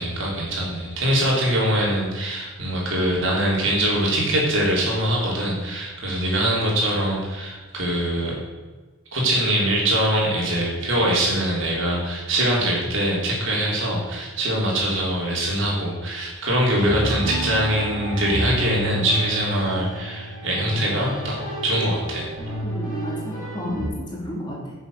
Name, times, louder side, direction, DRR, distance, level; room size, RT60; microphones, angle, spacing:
voice 1, 0.0-8.4 9.1-21.4 21.6-22.3, right 1 dB, 60° right, -3 dB, 3.8 m, -23 dB
sound 1, 16.9-23.9, right 1 dB, 5° right, 4.4 m, -30 dB
voice 2, 22.6-24.7, equal, 20° left, -3 dB, 2.9 m, -32 dB
11.0 x 6.9 x 6.8 m, 1.3 s
head